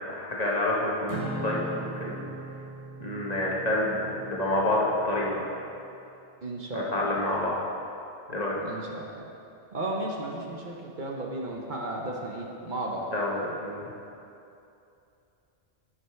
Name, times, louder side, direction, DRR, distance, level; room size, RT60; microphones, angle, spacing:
voice 1, 0.1-2.3 3.0-5.4 6.7-7.6 8.3-8.6 13.1-13.8, left 1 dB, 40° left, -4 dB, 1.2 m, -28 dB
Acoustic guitar / Strum, 1.1-5.5, right 2 dB, 80° right, 1.4 m, -39 dB
voice 2, 6.4-7.2 8.6-9.1 9.7-13.1, right 1 dB, 50° right, -1 dB, 0.9 m, -34 dB
9.9 x 5.5 x 4.5 m, 2.7 s
omnidirectional pair, 1.1 m